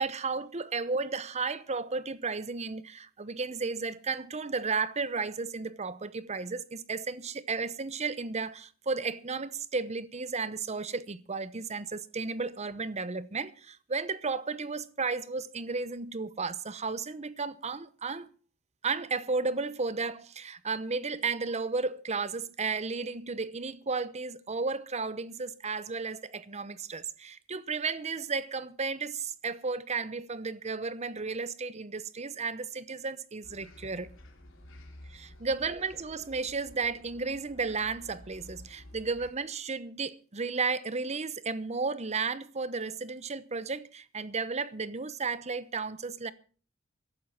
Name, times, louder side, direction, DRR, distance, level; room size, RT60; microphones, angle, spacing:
voice 1, 0.0-18.3 18.8-34.1 35.1-46.3, right 4 dB, 35° right, 0.9 m, -33 dB
sound 1, 33.4-39.3, left 1 dB, 70° left, 3.3 m, -52 dB
15.0 x 11.5 x 6.0 m
head